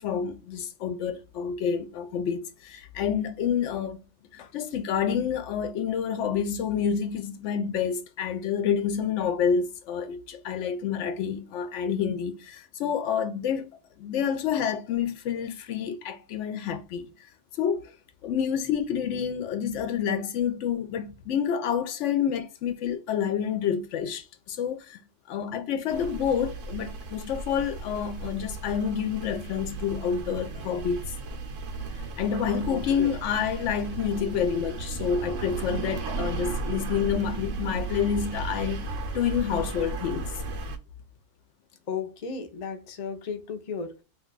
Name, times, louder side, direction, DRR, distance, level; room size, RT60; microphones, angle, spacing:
voice 1, 0.0-4.0 4.3-17.3 17.6-17.9 18.2-25.0 25.3-31.0 32.2-38.9 39.1-40.2, left 7 dB, 75° left, 0.9 m, -28 dB
sound 1, 25.9-40.8, right 3 dB, 85° right, 1.1 m, -35 dB
voice 2, 32.7-33.1 41.9-44.0, left 5 dB, 50° left, 0.5 m, -34 dB
2.6 x 2.2 x 3.7 m
omnidirectional pair, 1.3 m